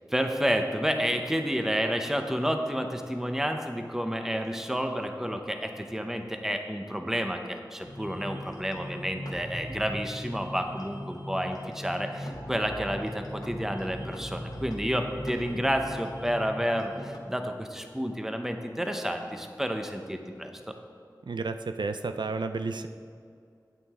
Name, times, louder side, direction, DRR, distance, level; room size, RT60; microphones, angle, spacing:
voice 1, 0.1-20.8, equal, 5° right, 5 dB, 0.8 m, -30 dB
sound 1, 7.8-17.2, equal, 60° left, 1.2 m, -39 dB
voice 2, 21.3-22.9, right 3 dB, 85° right, 8 dB, 0.3 m, -31 dB
9.3 x 8.4 x 3.6 m, 2.3 s
wide cardioid pair, 50°, 8 cm